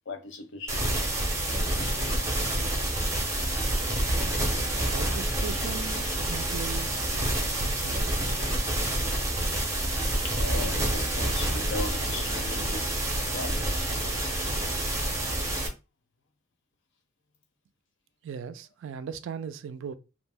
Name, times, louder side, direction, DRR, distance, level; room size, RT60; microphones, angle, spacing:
voice 1, 0.1-1.0 10.2-13.7, left 3 dB, 55° left, 0.5 m, -38 dB
sound 1, 0.7-15.7, right 1 dB, 15° right, 0.6 m, -28 dB
voice 2, 4.9-7.3 7.6-8.0 18.2-19.9, right 6 dB, 60° right, 0.3 m, -38 dB
2.4 x 2.0 x 3.3 m
head